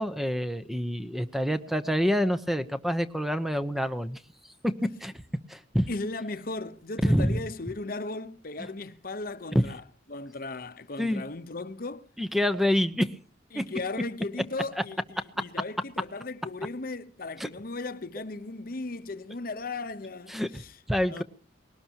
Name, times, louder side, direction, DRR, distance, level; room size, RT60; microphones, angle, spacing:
voice 1, 0.0-4.2 5.0-5.1 5.5-5.9 7.0-7.4 11.0-11.2 12.2-13.1 13.5-13.6 17.4-17.5 20.3-20.5 20.9-21.2, equal, ahead, 0.8 m, -27 dB
voice 2, 5.9-9.8 10.1-12.1 13.5-20.7 21.1-21.2, left 3 dB, 50° left, 0.9 m, -36 dB
21.0 x 18.0 x 2.9 m
head